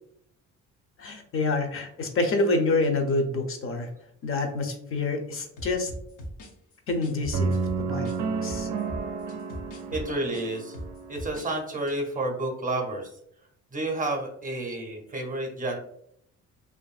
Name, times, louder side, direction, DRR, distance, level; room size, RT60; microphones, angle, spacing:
voice 1, 1.0-3.9 4.2-5.9 6.9-8.1 8.4-8.7, left 2 dB, 45° left, 4 dB, 0.6 m, -27 dB
sound 1, 5.6-8.2 8.5-11.5 11.8-12.0, right 1 dB, 85° left, 0.7 m, -39 dB
sound 2, 7.3-11.5, right 5 dB, 70° right, 0.5 m, -31 dB
voice 2, 9.9-10.7 11.1-13.1 13.7-15.8, right 2 dB, 25° right, 2 dB, 0.6 m, -30 dB
2.6 x 2.5 x 2.4 m, 0.70 s
cardioid pair, 90°, 30 cm